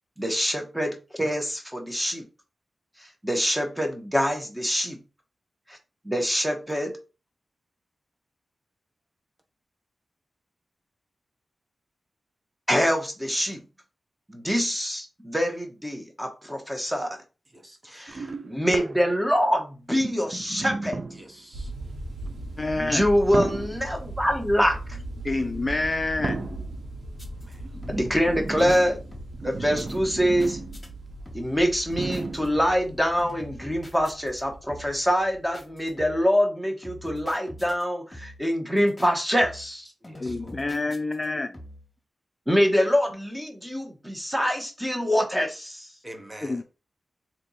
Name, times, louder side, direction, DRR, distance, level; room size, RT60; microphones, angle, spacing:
voice 1, 0.2-2.2 3.0-5.0 5.7-5.8 6.0-6.9 12.7-13.6 14.3-17.2 17.8-21.0 22.8-25.0 27.9-29.0 29.4-30.6 31.3-39.9 42.5-45.9, equal, 5° right, 1.3 m, -25 dB
voice 2, 17.5-18.2 21.1-21.7 27.4-27.7 40.0-40.6 46.0-46.6, right 1 dB, 25° right, 1.2 m, -46 dB
sound 1, 18.1-19.4 19.9-21.4 22.2-22.5 23.3-24.0 25.2-25.5 26.2-26.9 27.6-30.9 31.1-31.2 31.9-32.7 33.5-33.6, right 3 dB, 55° right, 0.5 m, -34 dB
sound 2, 21.5-36.1, right 1 dB, 85° right, 1.5 m, -39 dB
voice 3, 22.6-23.1 25.2-26.5 29.6-29.7 40.2-41.6 46.4-46.6, left 2 dB, 35° left, 0.4 m, -28 dB
sound 3, 27.2-27.5 27.8-28.2 28.5-28.8 29.1-29.5 29.7-30.9 31.2-31.6 31.9-32.9 33.2-34.4 34.7-35.1 35.5-36.3 36.8-37.8 38.1-38.5 38.8-39.1 39.4-39.8 40.0-41.3 41.5-41.9, equal, 20° left, 1.7 m, -44 dB
3.3 x 3.0 x 4.1 m
cardioid pair, 50°, 0 cm